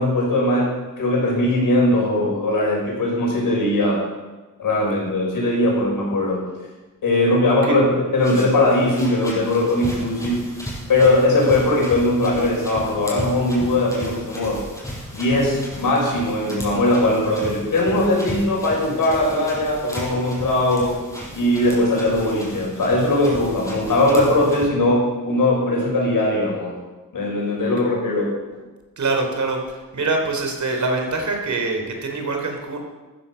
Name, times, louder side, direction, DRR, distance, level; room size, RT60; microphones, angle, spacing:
voice 1, 0.0-4.0 4.6-6.5 7.0-10.4 10.9-14.6 15.1-21.0 21.3-26.7 27.1-28.4, left 1 dB, 85° left, -2 dB, 6.5 m, -20 dB
sound 1, 8.2-24.7, equal, 10° left, 6.6 m, -35 dB
voice 2, 29.0-32.8, right 3 dB, 60° right, 2 dB, 3.6 m, -24 dB
14.5 x 13.5 x 5.7 m, 1.2 s
wide cardioid pair, 100°, 33 cm